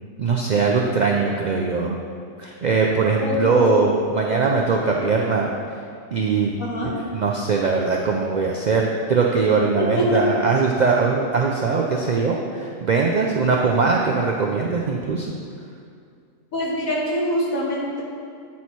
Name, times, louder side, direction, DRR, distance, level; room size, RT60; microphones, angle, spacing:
voice 1, 0.2-2.0 2.4-5.5 6.1-6.6 6.8-15.3, right 4 dB, 70° right, -1 dB, 0.4 m, -21 dB
voice 2, 3.2-3.7 4.3-4.4 6.6-6.9 9.8-10.1 16.5-18.0, left 1 dB, 90° left, -4 dB, 1.8 m, -24 dB
8.5 x 4.2 x 4.6 m, 2.3 s
omnidirectional pair, 1.4 m